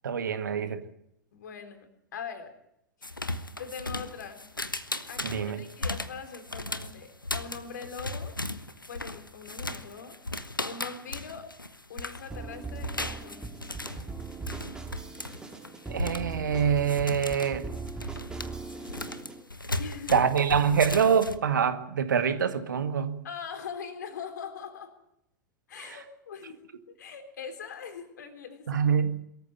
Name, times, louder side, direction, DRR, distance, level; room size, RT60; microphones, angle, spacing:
voice 1, 0.0-0.8 5.2-5.6 15.9-17.6 20.1-23.2 28.7-29.2, right 7 dB, 65° right, 1.8 m, -25 dB
voice 2, 1.3-2.5 3.6-4.5 5.1-8.3 8.9-10.2 10.6-11.5 11.9-13.5 19.8-20.3 23.2-25.0 25.7-26.6 26.9-28.8, left 6 dB, 60° left, 3.7 m, -41 dB
sound 1, 3.0-12.4 12.7-21.4, left 2 dB, 85° left, 1.2 m, -36 dB
sound 2, 12.3-19.4, right 3 dB, 5° right, 2.5 m, -40 dB
22.5 x 14.0 x 9.0 m
figure-of-eight pair, 90°, 11 cm